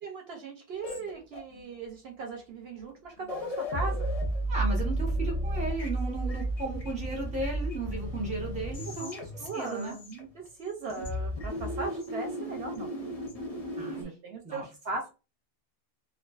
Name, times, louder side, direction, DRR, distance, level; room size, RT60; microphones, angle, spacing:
voice 1, 0.0-4.1 8.8-12.9 14.2-15.1, right 3 dB, 65° right, 2 dB, 0.8 m, -38 dB
sound 1, 0.8-1.8 2.8-2.9 3.2-10.6 10.9-14.0, right 1 dB, 40° left, 0.6 m, -33 dB
voice 2, 4.5-9.9 13.8-14.1 14.4-14.6, right 2 dB, 5° right, -1 dB, 0.7 m, -35 dB
2.3 x 2.3 x 2.3 m, 0.30 s
omnidirectional pair, 1.2 m